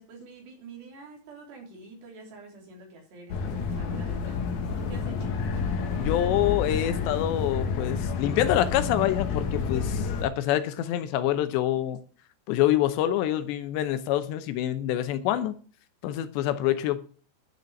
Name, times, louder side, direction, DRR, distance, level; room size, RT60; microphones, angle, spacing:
voice 1, 0.0-4.4 4.8-5.4, right 4 dB, 70° right, 5.8 m, -46 dB
sound 1, 3.3-10.2, left 5 dB, 55° left, 2.3 m, -29 dB
voice 2, 6.0-12.0 12.5-15.6 16.0-17.0, left 12 dB, 80° left, 3.0 m, -26 dB
12.0 x 6.7 x 7.1 m
omnidirectional pair, 5.1 m